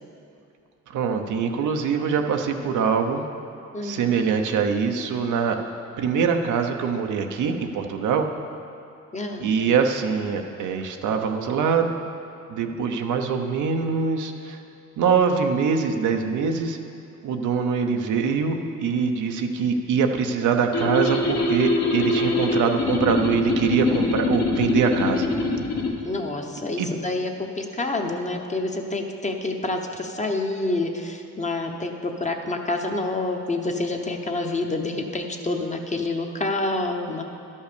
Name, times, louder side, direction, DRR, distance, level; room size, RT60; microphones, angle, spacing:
voice 1, 0.9-3.2 3.8-5.6 6.0-8.3 9.4-11.9 12.5-14.6 15.0-16.8 17.2-25.3 26.8-26.9, right 6 dB, 75° right, 4 dB, 0.9 m, -23 dB
voice 2, 9.1-9.5 26.0-37.2, left 2 dB, 25° left, 3 dB, 1.0 m, -28 dB
sound 1, 20.7-26.0, left 2 dB, 55° left, 1.4 m, -24 dB
11.5 x 5.5 x 6.8 m, 2.7 s
cardioid pair, 90°, 30 cm